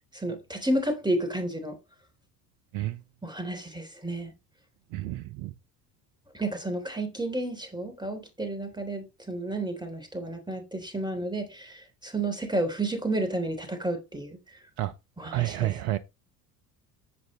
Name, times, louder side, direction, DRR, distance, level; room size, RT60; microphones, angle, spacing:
voice 1, 0.1-1.8 3.2-4.3 6.3-14.6 15.2-15.7, right 1 dB, 10° right, 3.4 m, -31 dB
voice 2, 4.9-5.5 14.8-14.9 15.2-16.0, right 16 dB, 60° right, 0.9 m, -30 dB
11.0 x 7.8 x 3.2 m
figure-of-eight pair, 65°, 50 cm